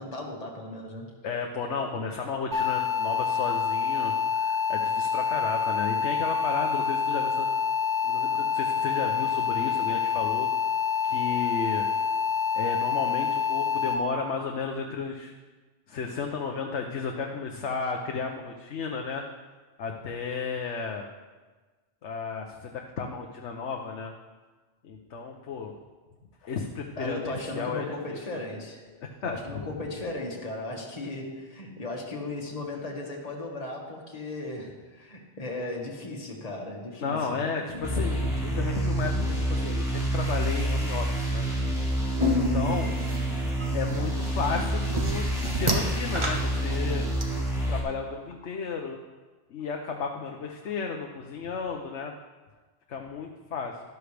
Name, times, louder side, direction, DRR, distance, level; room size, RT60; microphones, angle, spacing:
voice 1, 0.0-1.1 27.0-28.8 29.2-37.5 37.7-37.9, left 2 dB, 35° left, -1 dB, 1.8 m, -36 dB
voice 2, 1.2-7.5 8.0-10.5 11.0-11.9 12.5-15.3 15.9-19.2 19.8-21.1 22.0-24.1 24.8-25.7 26.4-28.2 29.0-29.3 37.0-41.5 41.8-42.0 42.3-43.0 43.7-47.0 47.7-49.0 49.5-52.1 52.9-53.8, left 5 dB, 85° left, 2 dB, 1.1 m, -33 dB
sound 1, 2.5-13.9, left 6 dB, 80° right, 2.8 m, -27 dB
sound 2, 37.8-47.8, right 1 dB, 5° right, 2.5 m, -28 dB
sound 3, 42.2-47.2, left 1 dB, 25° right, 1.2 m, -30 dB
12.5 x 12.0 x 3.4 m, 1.3 s
omnidirectional pair, 1.2 m